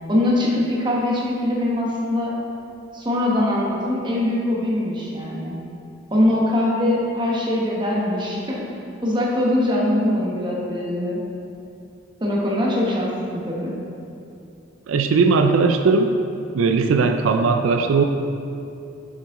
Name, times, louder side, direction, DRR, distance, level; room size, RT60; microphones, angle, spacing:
voice 1, 0.1-2.3 2.9-5.6 6.1-8.6 9.0-11.2 12.2-13.7, left 1 dB, 25° right, -4 dB, 1.1 m, -22 dB
voice 2, 14.9-16.1 16.5-18.0, right 4 dB, 90° right, 6 dB, 0.4 m, -18 dB
6.4 x 6.0 x 3.6 m, 2.7 s
head